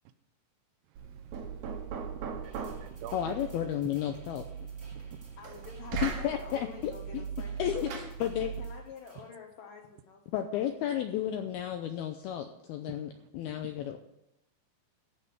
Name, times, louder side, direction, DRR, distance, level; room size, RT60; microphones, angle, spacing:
Knock, 0.9-8.8, right 6 dB, 65° right, 2.5 m, -39 dB
voice 1, 0.9-3.4 4.9-5.4 12.9-13.0 13.6-13.9, right 11 dB, 85° right, 11 dB, 2.4 m, -49 dB
sound 1, 2.4-9.3, right 1 dB, 40° right, 0.9 m, -61 dB
voice 2, 3.1-4.7 6.0-7.2 7.6-8.5 10.3-14.0, left 11 dB, 85° left, 6 dB, 2.2 m, -33 dB
voice 3, 5.4-8.0 8.6-11.0, left 5 dB, 65° left, 0 dB, 2.2 m, -49 dB
14.5 x 5.5 x 7.8 m, 0.82 s
omnidirectional pair, 5.2 m